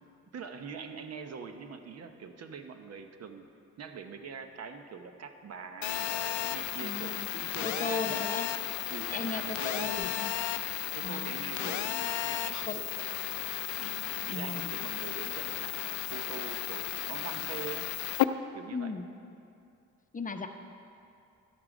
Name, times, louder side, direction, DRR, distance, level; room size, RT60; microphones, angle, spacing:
voice 1, 0.3-3.5 3.8-8.5 8.9-10.1 10.9-13.1 13.8-17.9 18.5-18.9, right 6 dB, 55° right, 7 dB, 0.8 m, -44 dB
Telephone, 5.8-18.2, left 13 dB, 70° left, 0.4 m, -34 dB
voice 2, 6.8-7.3 7.6-8.5 9.1-10.3 11.0-11.3 11.6-11.7 12.7-12.8 14.3-14.8 18.7-19.1 20.1-20.5, left 3 dB, 25° left, 6 dB, 0.7 m, -36 dB
11.5 x 8.6 x 4.9 m, 2.5 s
cardioid pair, 90°, 30 cm